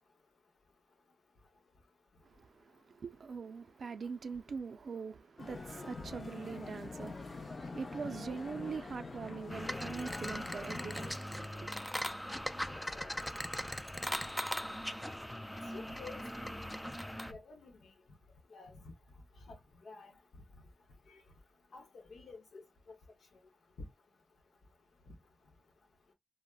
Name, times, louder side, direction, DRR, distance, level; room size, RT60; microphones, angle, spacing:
voice 1, 2.2-11.7, right 5 dB, 75° right, 0.4 m, -43 dB
sound 1, 5.4-11.1, left 3 dB, 50° left, 0.6 m, -44 dB
sound 2, 9.5-17.3, equal, 5° left, 0.3 m, -40 dB
voice 2, 12.7-13.1 15.7-16.4 17.3-17.9 18.5-18.9 19.5-19.6 19.8-20.1 21.1-21.2 21.7-22.6, left 3 dB, 80° left, 0.9 m, -50 dB
3.3 x 2.0 x 2.3 m
cardioid pair, 70°, 0 cm